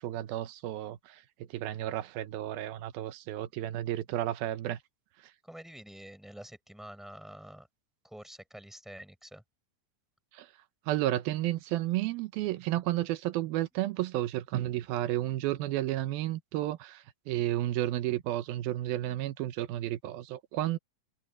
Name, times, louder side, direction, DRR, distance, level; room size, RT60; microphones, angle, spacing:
voice 1, 0.0-4.8 5.2-5.3 10.3-10.5 10.9-20.8, right 14 dB, 90° right, 2.8 m, -32 dB
voice 2, 5.5-7.7 8.0-9.4, right 1 dB, ahead, 6.4 m, -47 dB
omnidirectional pair, 4.1 m